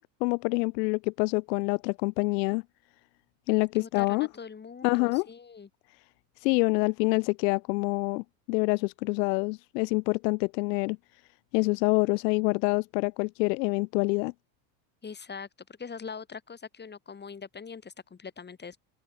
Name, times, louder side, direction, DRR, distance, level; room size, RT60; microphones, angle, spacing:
voice 1, 0.0-2.6 3.5-4.3 4.8-5.3 6.4-11.0 11.5-14.3, left 27 dB, 85° left, 0.6 m, -26 dB
voice 2, 3.7-5.7 15.0-15.5 15.8-18.8, left 6 dB, 20° left, 2.8 m, -42 dB
open air
supercardioid pair, 110°, 48 cm